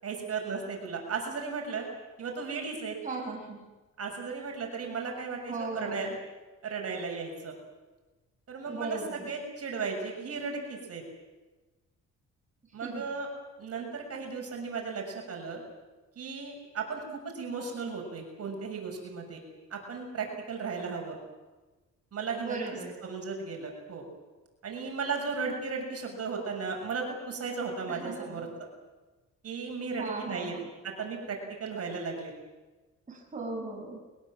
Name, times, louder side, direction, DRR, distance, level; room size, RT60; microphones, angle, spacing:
voice 1, 0.0-1.9 2.2-3.0 4.0-6.1 6.6-7.5 8.5-11.0 12.7-13.3 13.6-15.6 16.1-19.4 19.7-21.2 22.1-22.6 23.0-24.0 24.6-28.7 29.4-30.5 30.8-32.3, right 4 dB, 55° right, 1 dB, 6.7 m, -35 dB
voice 2, 3.0-3.6 5.5-6.2 8.6-9.3 12.8-13.1 22.4-22.9 27.9-28.5 30.0-30.7 33.1-34.0, right 3 dB, 25° right, -1 dB, 6.3 m, -38 dB
22.5 x 21.5 x 7.5 m, 1.2 s
cardioid pair, 90°, 30 cm